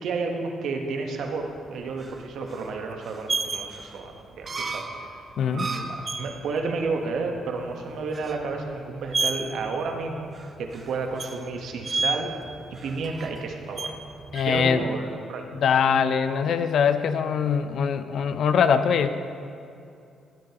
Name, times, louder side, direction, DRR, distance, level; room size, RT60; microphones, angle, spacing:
voice 1, 0.0-5.2 5.5-10.3 10.6-12.3 12.7-13.9 14.4-15.5, right 4 dB, 70° right, 3 dB, 1.1 m, -31 dB
sound 1, 1.3-14.7, right 3 dB, 35° right, 0.7 m, -33 dB
voice 2, 5.4-5.7 14.3-14.8 15.6-19.2, left 7 dB, 65° left, 10 dB, 0.5 m, -22 dB
16.0 x 8.8 x 2.9 m, 2.5 s
cardioid pair, 90°, 0 cm